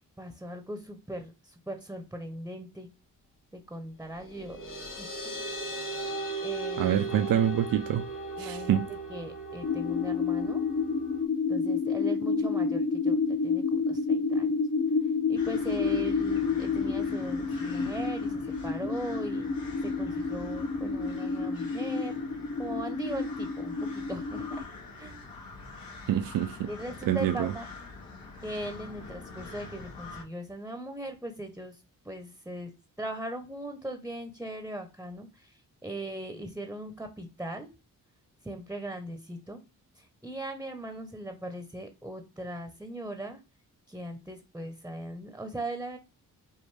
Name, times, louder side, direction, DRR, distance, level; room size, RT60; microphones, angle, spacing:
voice 1, 0.0-2.9 3.5-4.6 5.0-5.7 6.4-7.1 8.4-8.8 9.1-10.6 11.5-14.5 15.3-22.1 22.6-24.7 25.0-25.2 26.7-27.7 28.4-32.7 33.0-37.7 38.4-39.6 40.0-43.4 43.9-46.0, right 1 dB, 5° right, 0.9 m, -39 dB
sound 1, 4.1-11.2, right 2 dB, 55° left, 2.5 m, -37 dB
voice 2, 6.8-8.1 8.4-8.9 26.1-26.7 27.1-27.5, right 10 dB, 70° right, 0.5 m, -26 dB
sound 2, 9.6-24.6, left 4 dB, 35° left, 0.7 m, -29 dB
sound 3, 15.4-30.2, left 3 dB, 75° left, 1.5 m, -45 dB
5.3 x 2.5 x 3.3 m
cardioid pair, 65°, 35 cm